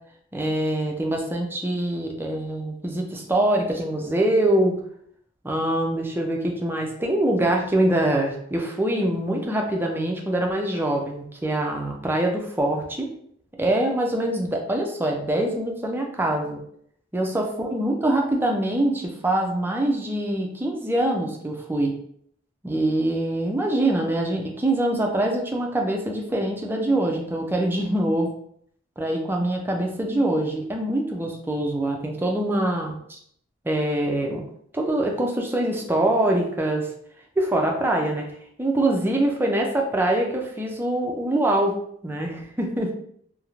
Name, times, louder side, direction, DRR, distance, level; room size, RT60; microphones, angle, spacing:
voice 1, 0.3-4.8 5.4-13.1 13.6-16.6 17.1-22.0 22.6-28.3 29.0-33.2 33.6-34.4 34.7-36.9 37.4-38.3 38.6-41.7 42.0-42.9, right 1 dB, 10° right, 1 dB, 0.4 m, -24 dB
2.4 x 2.0 x 3.0 m, 0.66 s
head